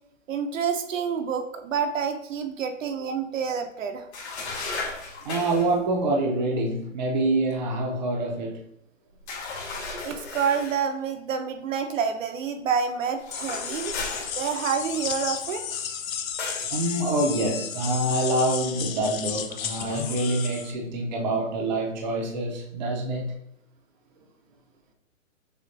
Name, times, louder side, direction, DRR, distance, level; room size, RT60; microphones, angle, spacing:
voice 1, 0.3-4.1 10.0-14.0 14.4-15.6, right 6 dB, 70° right, 5 dB, 0.7 m, -28 dB
sound 1, 4.1-5.7 9.3-10.8 13.2-14.9 16.4-16.7, left 3 dB, 55° left, 1.4 m, -35 dB
voice 2, 5.2-8.6 16.7-23.3, right 2 dB, 35° right, 0 dB, 0.6 m, -26 dB
sound 2, 13.3-20.7, left 8 dB, 85° left, 0.7 m, -33 dB
6.5 x 2.2 x 2.6 m, 0.80 s
hypercardioid pair, 160°, 40 cm